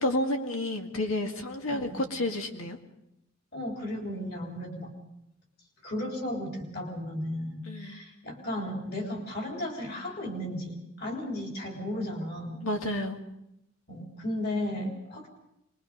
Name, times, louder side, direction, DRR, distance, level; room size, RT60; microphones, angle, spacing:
voice 1, 0.0-2.8 7.7-8.0 12.6-13.2, left 1 dB, 85° left, 4 dB, 2.0 m, -30 dB
voice 2, 1.7-2.0 3.5-4.9 5.8-12.6 13.9-15.3, left 1 dB, 50° left, 1 dB, 3.9 m, -35 dB
24.5 x 21.5 x 5.3 m, 0.83 s
head